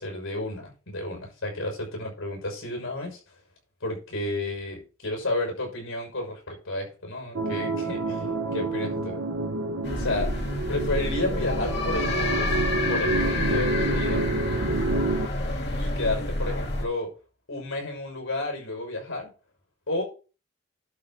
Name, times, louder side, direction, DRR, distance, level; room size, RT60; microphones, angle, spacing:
voice 1, 0.0-3.2 3.8-9.2 10.0-10.3 10.7-12.5 12.9-14.2 15.8-17.1 17.5-19.3 19.9-20.0, left 2 dB, 80° left, 1 dB, 5.9 m, -31 dB
sound 1, 7.3-15.3, right 2 dB, 70° right, 0.8 m, -29 dB
sound 2, 9.8-16.8, left 1 dB, 50° left, 2.4 m, -28 dB
11.5 x 3.9 x 6.2 m, 0.33 s
head